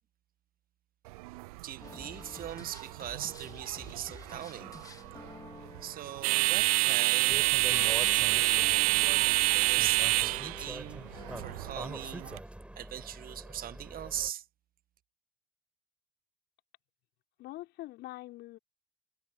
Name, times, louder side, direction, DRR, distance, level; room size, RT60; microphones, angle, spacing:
sound 1, 1.1-12.4, right 22 dB, 70° right, 0.4 m, -29 dB
voice 1, 1.6-4.7 5.8-12.3 12.7-14.4, right 11 dB, 45° right, 1.9 m, -41 dB
sound 2, 1.8-11.6, left 3 dB, 15° left, 3.1 m, -51 dB
sound 3, 7.3-14.3, right 1 dB, 5° right, 7.2 m, -44 dB
voice 2, 17.4-18.6, left 17 dB, 55° left, 4.8 m, -44 dB
figure-of-eight pair, 60°, 20 cm